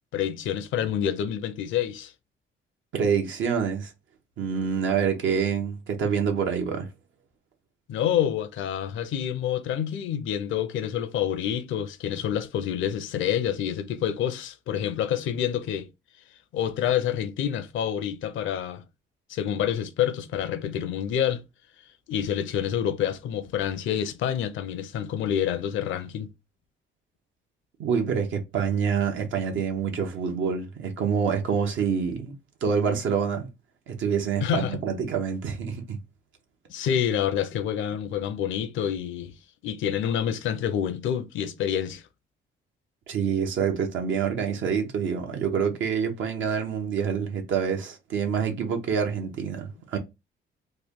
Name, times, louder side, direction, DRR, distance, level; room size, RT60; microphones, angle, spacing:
voice 1, 0.1-2.1 7.9-15.9 16.5-18.8 19.3-21.4 22.1-26.3 34.4-34.8 36.7-39.3 39.6-42.0, left 9 dB, 75° left, 0.6 m, -27 dB
voice 2, 2.9-3.9 4.4-6.9 27.8-32.3 32.6-33.5 33.9-36.0 43.1-50.0, right 6 dB, 75° right, 0.8 m, -26 dB
3.2 x 2.2 x 3.6 m
cardioid pair, 90°, 20 cm